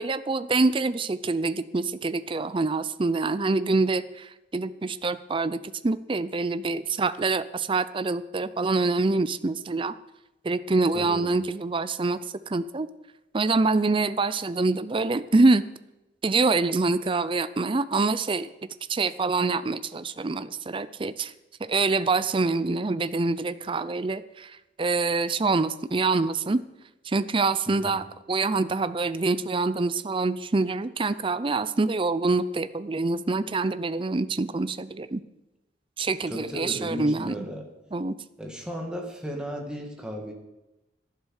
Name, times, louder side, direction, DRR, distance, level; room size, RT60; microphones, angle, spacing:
voice 1, 0.0-9.9 10.4-12.2 12.5-12.9 13.3-15.6 16.2-18.5 18.9-21.3 21.6-26.6 27.1-35.2 36.0-37.4 37.9-38.2, right 3 dB, 30° right, 14 dB, 0.5 m, -25 dB
voice 2, 10.9-11.3 27.7-28.1 36.3-37.7 38.4-40.3, equal, 5° right, 1 dB, 2.0 m, -35 dB
11.5 x 11.0 x 6.5 m, 0.95 s
head